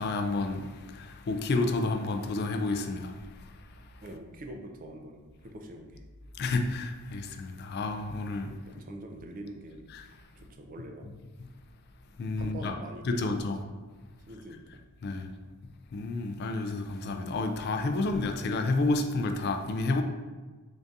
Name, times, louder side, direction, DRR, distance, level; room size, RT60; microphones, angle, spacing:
voice 1, 0.0-3.1 6.4-8.5 9.9-10.0 12.2-12.7 13.1-13.6 15.0-15.3 15.9-20.0, left 3 dB, 45° left, 6 dB, 0.3 m, -30 dB
voice 2, 4.0-6.0 7.8-7.9 8.7-9.9 10.4-11.1 12.4-13.7 14.3-14.8, right 1 dB, 40° right, 4 dB, 0.4 m, -44 dB
3.7 x 2.7 x 3.4 m, 1.3 s
head